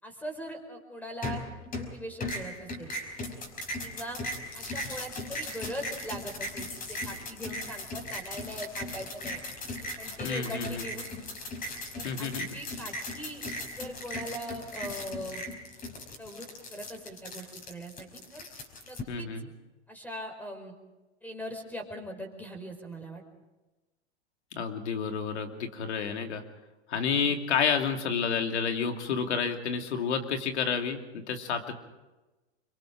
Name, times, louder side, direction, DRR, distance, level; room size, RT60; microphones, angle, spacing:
voice 1, 0.0-1.4 1.8-2.9 3.8-4.2 4.5-9.4 10.0-11.2 11.9-13.4 13.7-15.4 16.2-18.4 18.8-19.3 19.9-20.7 21.2-23.2, equal, 5° left, 5 dB, 4.9 m, -41 dB
sound 1, 1.2-1.9 2.2-19.0, left 2 dB, 25° left, 5.1 m, -38 dB
voice 2, 10.2-10.8 12.0-12.5 19.1-19.5 24.6-26.4 26.9-31.7, left 6 dB, 85° left, 5 dB, 2.8 m, -30 dB
25.5 x 23.0 x 5.1 m, 1.1 s
hypercardioid pair, 120°, 33 cm